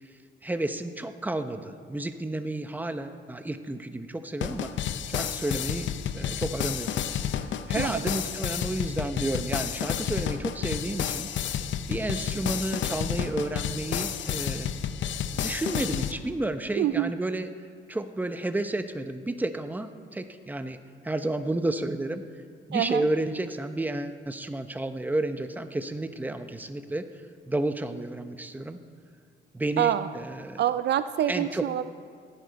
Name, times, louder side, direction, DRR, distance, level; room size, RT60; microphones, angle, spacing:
voice 1, 0.4-4.7 5.1-5.9 6.1-7.0 7.7-11.3 11.9-14.7 15.3-17.5 17.9-20.8 21.0-22.2 22.7-27.1 27.5-28.8 29.5-30.6 31.3-31.6, right 2 dB, 10° right, 9 dB, 0.8 m, -31 dB
sound 1, 4.4-16.1, left 9 dB, 70° left, 0.7 m, -31 dB
voice 2, 7.8-8.1 16.8-17.1 22.7-23.1 29.8-30.1 30.6-31.9, right 11 dB, 60° right, 13 dB, 0.4 m, -26 dB
17.5 x 11.0 x 4.0 m, 2.1 s
cardioid pair, 90°, 20 cm